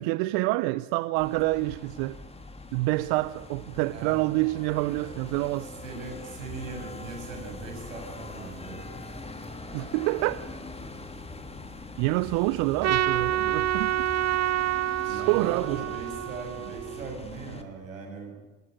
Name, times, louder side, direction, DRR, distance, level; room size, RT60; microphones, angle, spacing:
voice 1, 0.0-2.2 2.7-5.7 9.7-10.4 12.0-14.1 15.0-15.8, right 20 dB, 65° right, 0.8 m, -27 dB
sound 1, 1.2-17.6, left 2 dB, 15° left, 3.4 m, -42 dB
voice 2, 3.9-4.3 5.6-8.9 15.0-18.4, right 4 dB, 90° right, 6.9 m, -40 dB
Trumpet, 12.8-17.2, right 12 dB, 40° right, 1.0 m, -28 dB
26.5 x 20.5 x 9.3 m
hypercardioid pair, 65°, 38 cm